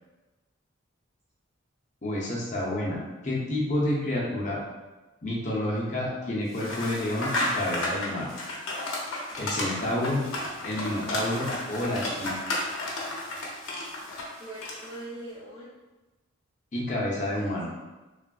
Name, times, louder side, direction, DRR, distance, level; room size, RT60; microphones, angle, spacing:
voice 1, 2.0-3.0 3.2-4.6 5.2-8.3 9.4-10.2 10.6-12.4 16.7-17.7, left 1 dB, 35° left, -5 dB, 0.6 m, -29 dB
sound 1, 6.5-15.0, left 1 dB, 80° left, 0.6 m, -33 dB
voice 2, 14.4-15.7 17.3-17.7, right 1 dB, 25° right, -8 dB, 0.4 m, -42 dB
3.2 x 2.4 x 2.2 m, 1.1 s
head